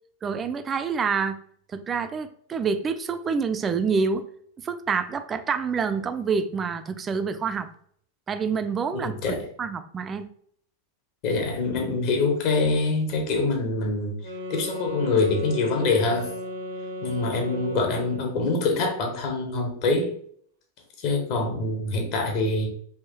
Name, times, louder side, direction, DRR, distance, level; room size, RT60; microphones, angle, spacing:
voice 1, 0.2-1.4 1.7-4.2 4.6-7.7 8.3-10.3, right 5 dB, 20° right, 9 dB, 0.3 m, -27 dB
voice 2, 8.9-9.4 11.2-14.2 14.5-16.3 17.0-20.1 21.0-22.7, left 3 dB, 45° left, 3 dB, 0.9 m, -25 dB
sound 1, 14.2-18.4, equal, 70° right, 0.7 m, -35 dB
3.6 x 2.9 x 2.7 m, 0.63 s
figure-of-eight pair, 90°, 0 cm